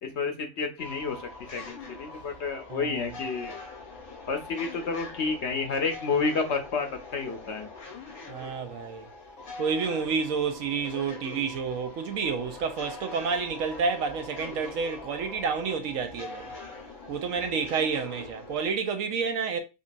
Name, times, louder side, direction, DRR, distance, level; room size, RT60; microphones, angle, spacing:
voice 1, 0.0-3.6 4.3-7.7, left 4 dB, 60° left, 0.9 m, -30 dB
sound 1, 0.8-18.7, left 3 dB, 90° left, 1.7 m, -43 dB
voice 2, 2.7-3.0 8.3-9.1 9.6-16.5 17.1-19.6, right 5 dB, 75° right, 1.0 m, -29 dB
5.1 x 2.4 x 2.6 m
omnidirectional pair, 1.4 m